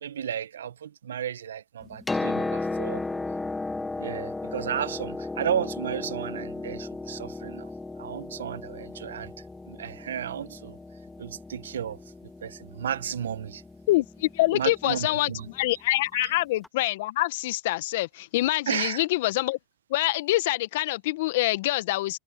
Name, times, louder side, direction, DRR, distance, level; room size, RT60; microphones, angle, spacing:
voice 1, 0.0-3.0 4.0-7.7 8.0-9.3 9.7-10.8 11.2-12.0 12.4-13.6 14.5-15.5 16.1-16.3 18.7-19.0, right 9 dB, 85° right, 1.0 m, -33 dB
Piano, 1.8-15.6 16.6-16.7, left 3 dB, 10° left, 2.1 m, -35 dB
voice 2, 13.9-19.6 19.9-22.2, left 18 dB, 70° left, 1.5 m, -25 dB
hypercardioid pair, 90°, 0 cm